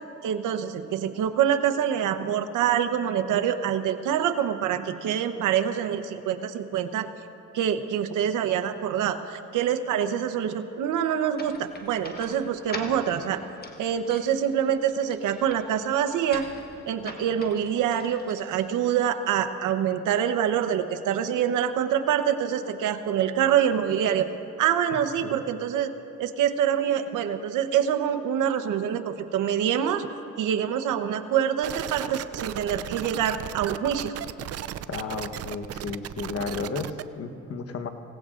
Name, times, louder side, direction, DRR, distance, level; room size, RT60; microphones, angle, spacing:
voice 1, 0.2-7.1 7.5-13.4 13.8-16.5 16.9-24.3 24.6-25.9 26.2-30.1 30.4-34.1, right 9 dB, 85° right, 7 dB, 1.0 m, -25 dB
sound 1, 11.4-19.0, left 3 dB, 30° left, 1.3 m, -44 dB
voice 2, 24.9-25.4 34.9-37.9, left 4 dB, 50° left, 7 dB, 1.2 m, -33 dB
sound 2, 31.6-37.0, right 11 dB, 55° right, 0.5 m, -35 dB
26.0 x 17.0 x 2.5 m, 2.8 s
cardioid pair, 90°, 30 cm